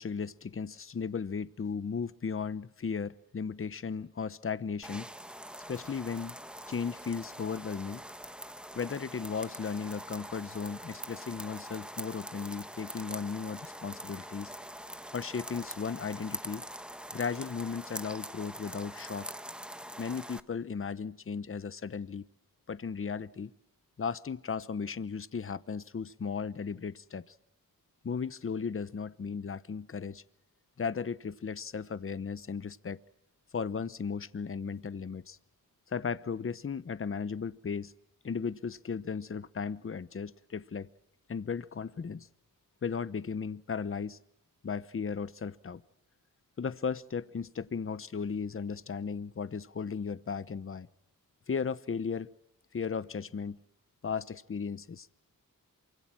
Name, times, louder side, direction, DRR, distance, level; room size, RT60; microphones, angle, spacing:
voice 1, 0.0-5.1 5.7-6.3 6.7-8.0 8.7-14.5 15.1-16.6 17.1-19.3 20.0-22.2 22.7-23.5 24.0-27.3 28.0-30.2 30.8-33.0 33.5-35.4 35.9-37.9 38.2-40.9 41.3-42.3 42.8-44.2 44.6-45.8 46.6-50.9 51.5-52.3 52.7-53.6 54.0-55.1, left 5 dB, 40° left, 16 dB, 0.9 m, -36 dB
sound 1, 4.8-20.4, equal, 5° right, 1.1 m, -44 dB
27.5 x 25.0 x 7.6 m, 0.83 s
wide cardioid pair, 130°, 34 cm